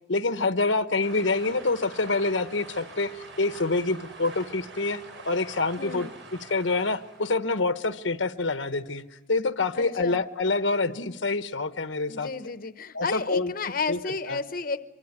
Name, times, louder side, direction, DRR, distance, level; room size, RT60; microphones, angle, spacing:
voice 1, 0.1-6.1 6.4-9.0 9.3-12.3 12.9-13.5 13.9-14.0 14.3-14.4, left 3 dB, 85° left, 10 dB, 1.1 m, -26 dB
sound 1, 1.0-7.4, right 3 dB, 80° right, 5.9 m, -45 dB
voice 2, 5.8-6.1 9.7-10.2 12.1-14.9, left 4 dB, 50° left, 11 dB, 0.9 m, -32 dB
25.0 x 24.5 x 9.6 m, 1.0 s
head